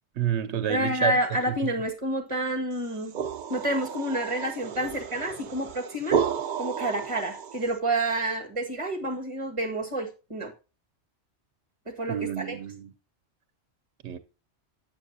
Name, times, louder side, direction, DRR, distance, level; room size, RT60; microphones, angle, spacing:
voice 1, 0.2-1.2 1.5-1.6 12.1-12.9 14.0-14.2, right 10 dB, 80° right, 1.0 m, -29 dB
voice 2, 0.7-3.2 3.5-6.2 6.6-10.5 11.9-12.6, right 1 dB, 30° right, 1.7 m, -29 dB
sound 1, 2.8-7.8, right 7 dB, 50° right, 0.7 m, -32 dB
11.5 x 7.4 x 2.7 m
omnidirectional pair, 1.1 m